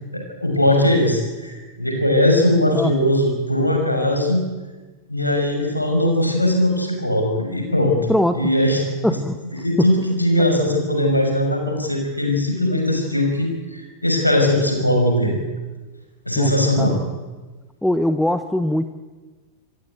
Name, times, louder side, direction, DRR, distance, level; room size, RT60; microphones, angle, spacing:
voice 1, 0.1-4.4 5.1-8.8 9.4-15.3 16.2-17.0, left 1 dB, 85° left, 2 dB, 6.1 m, -20 dB
voice 2, 8.1-8.4 9.0-9.4 9.8-9.9 16.4-16.5 16.8-17.0 17.8-18.9, left 1 dB, 5° left, 9 dB, 1.2 m, -21 dB
28.0 x 15.0 x 9.3 m, 1.3 s
figure-of-eight pair, 90°, 0 cm